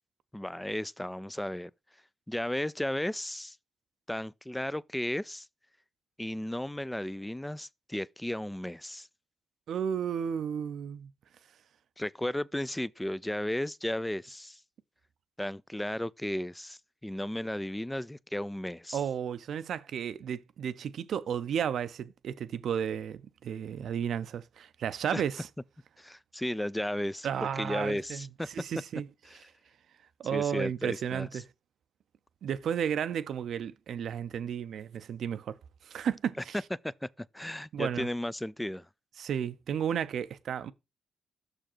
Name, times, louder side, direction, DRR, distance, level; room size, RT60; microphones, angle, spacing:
voice 1, 0.3-1.7 2.3-3.6 4.1-5.5 6.2-9.1 12.0-14.6 15.4-19.0 25.1-25.2 26.0-28.5 29.3-29.4 30.3-31.4 36.8-38.9, left 1 dB, 10° left, 0.3 m, -34 dB
voice 2, 9.7-11.1 18.9-25.5 27.2-29.1 30.2-31.4 32.4-35.6 35.9-36.6 37.7-38.1 39.2-40.7, right 8 dB, 70° right, 0.5 m, -33 dB
6.4 x 5.0 x 4.4 m
cardioid pair, 70°, 0 cm